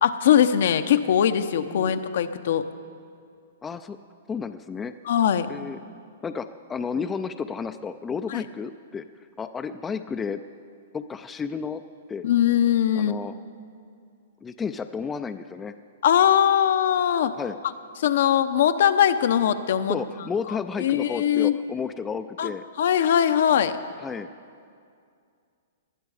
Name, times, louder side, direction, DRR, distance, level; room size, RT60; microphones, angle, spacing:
voice 1, 0.0-2.6 5.0-5.5 8.3-8.4 12.2-13.3 16.0-17.3 18.0-20.0 20.8-21.6 22.4-22.5 22.8-23.8, left 9 dB, 65° left, 10 dB, 0.7 m, -21 dB
voice 2, 3.6-4.0 4.3-4.9 5.5-5.8 6.2-9.0 9.4-10.4 10.9-11.8 12.1-12.2 13.0-13.3 14.4-15.7 17.4-17.6 19.9-22.6 24.0-24.3, left 5 dB, 15° left, 9 dB, 0.4 m, -32 dB
19.0 x 11.5 x 4.9 m, 2.3 s
hypercardioid pair, 140°, 0 cm